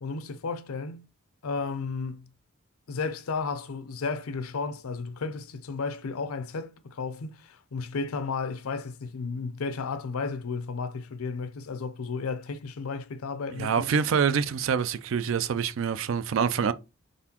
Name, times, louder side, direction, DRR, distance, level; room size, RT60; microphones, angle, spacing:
voice 1, 0.0-1.1 1.4-2.3 2.9-13.9, left 4 dB, 90° left, 0.5 m, -33 dB
voice 2, 13.6-16.7, right 6 dB, 65° right, 0.4 m, -26 dB
4.0 x 3.7 x 2.8 m
head